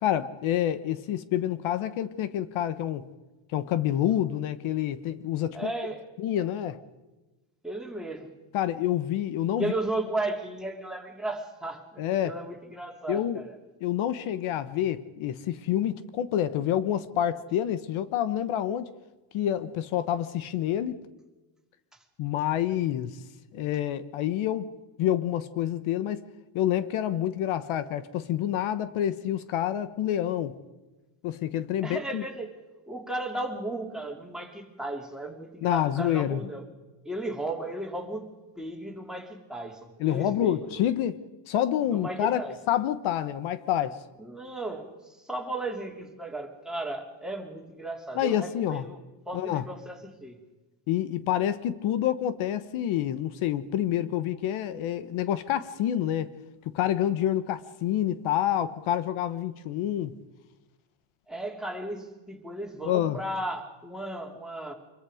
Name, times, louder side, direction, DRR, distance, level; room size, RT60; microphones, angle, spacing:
voice 1, 0.0-3.1 3.5-5.7 6.2-6.8 8.5-9.7 12.0-12.4 13.1-13.4 13.8-18.9 19.3-21.0 22.2-23.2 23.5-24.7 25.0-26.2 26.5-30.6 31.2-32.2 35.6-36.4 40.0-42.4 42.7-44.0 48.1-48.9 49.3-49.6 50.9-56.3 56.6-60.2 62.8-63.2, left 11 dB, 75° left, 1.3 m, -28 dB
voice 2, 5.5-6.0 7.6-8.3 9.6-13.5 21.9-22.0 31.8-32.5 32.9-36.7 37.0-38.3 38.6-40.8 41.9-42.5 44.2-50.4 61.3-64.7, right 2 dB, ahead, 3.1 m, -35 dB
25.5 x 22.5 x 5.1 m
cardioid pair, 140°, 49 cm